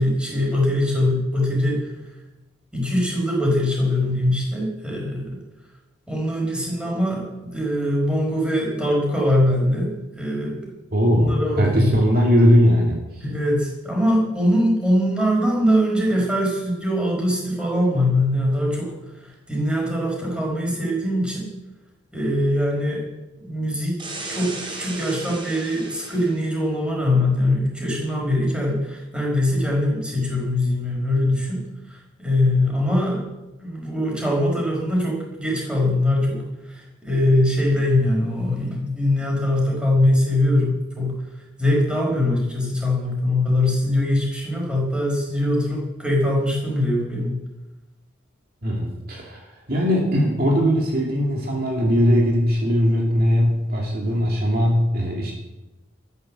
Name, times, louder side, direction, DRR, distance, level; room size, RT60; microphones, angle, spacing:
voice 1, 0.0-1.9 2.7-5.4 6.1-10.5 11.0-11.9 13.2-18.9 19.5-21.5 22.1-23.0 23.4-33.2 33.6-41.2 41.6-47.4, left 1 dB, 5° right, -2 dB, 5.0 m, -22 dB
voice 2, 10.9-13.0 48.6-55.3, equal, 50° right, -1 dB, 2.6 m, -19 dB
sound 1, 24.0-26.5, right 2 dB, 25° right, 2.9 m, -35 dB
13.5 x 11.0 x 7.6 m, 1.0 s
head